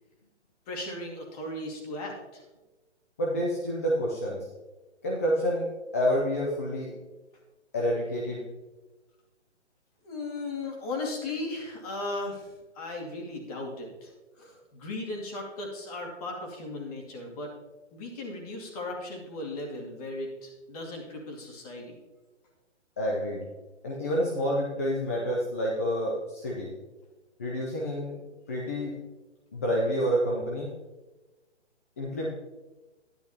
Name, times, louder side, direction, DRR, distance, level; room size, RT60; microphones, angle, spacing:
voice 1, 0.7-2.4 10.0-14.1 14.4-17.5 17.9-22.0, left 2 dB, 30° left, 0 dB, 2.4 m, -37 dB
voice 2, 3.2-4.5 5.0-5.7 5.9-6.9 7.7-8.4 14.4-14.5 23.0-23.5 23.8-26.7 27.4-28.2 28.5-29.0 29.5-30.7 32.0-32.3, equal, 15° left, -3 dB, 0.5 m, -28 dB
11.5 x 11.0 x 2.9 m, 1.2 s
hypercardioid pair, 150°, 35 cm